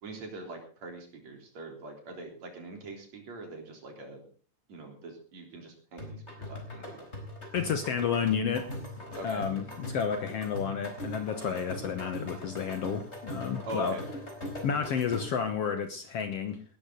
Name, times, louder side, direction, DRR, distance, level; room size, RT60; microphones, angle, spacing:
voice 1, 0.0-4.3 4.7-7.1 9.1-9.5 13.7-14.0, right 2 dB, 55° right, 3 dB, 4.8 m, -43 dB
sound 1, 6.0-15.5, left 1 dB, 20° left, 4.5 m, -41 dB
voice 2, 7.5-8.7 9.2-14.0 14.6-16.6, left 7 dB, 60° left, 8 dB, 1.8 m, -31 dB
18.0 x 13.5 x 3.8 m, 0.41 s
omnidirectional pair, 3.7 m